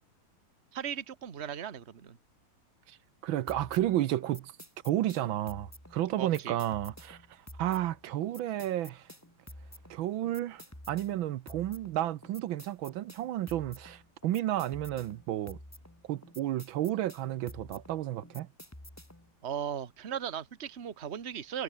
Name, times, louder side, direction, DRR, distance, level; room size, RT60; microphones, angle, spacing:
voice 1, 0.7-2.2 6.1-6.6 19.4-21.6, right 9 dB, 35° right, 1.4 m, -37 dB
voice 2, 3.2-4.5 4.8-9.1 9.9-15.6 16.0-18.5, right 13 dB, 80° right, 1.5 m, -32 dB
sound 1, 3.5-19.3, left 1 dB, 5° left, 3.3 m, -50 dB
omnidirectional pair, 2.2 m